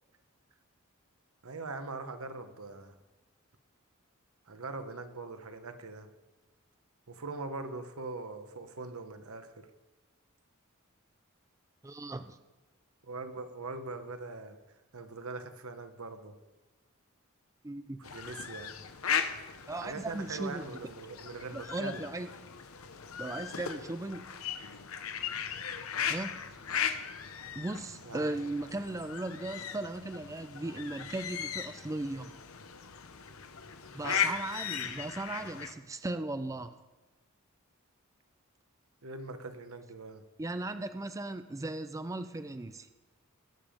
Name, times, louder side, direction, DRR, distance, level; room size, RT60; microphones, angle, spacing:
voice 1, 1.4-2.9 4.5-6.1 7.1-9.7 13.0-14.6 14.9-16.4 18.0-18.8 19.8-22.1 28.0-28.4 33.9-34.3 39.0-40.2, right 3 dB, 85° right, 9 dB, 1.1 m, -42 dB
voice 2, 11.8-12.4 17.6-18.0 19.7-20.6 21.5-22.3 23.2-24.4 26.1-26.4 27.5-32.3 33.9-36.8 40.4-42.9, right 2 dB, 15° right, 10 dB, 0.4 m, -37 dB
sound 1, 18.0-35.7, left 7 dB, 80° left, 1.0 m, -38 dB
20.5 x 7.2 x 5.1 m, 1.2 s
head